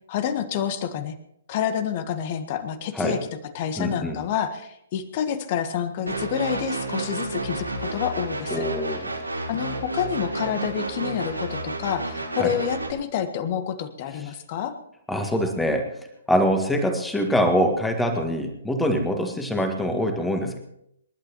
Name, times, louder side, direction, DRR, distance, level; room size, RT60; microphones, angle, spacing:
voice 1, 0.1-1.1 1.5-3.2 3.5-8.7 9.5-14.7, left 9 dB, 35° left, 10 dB, 1.5 m, -28 dB
voice 2, 3.8-4.2 8.5-9.1 12.4-12.5 15.1-15.9 16.3-20.6, equal, 5° left, 5 dB, 1.9 m, -24 dB
sound 1, 6.1-12.9, right 2 dB, 80° right, 2.8 m, -31 dB
27.0 x 11.5 x 3.1 m, 0.76 s
figure-of-eight pair, 125°, 0 cm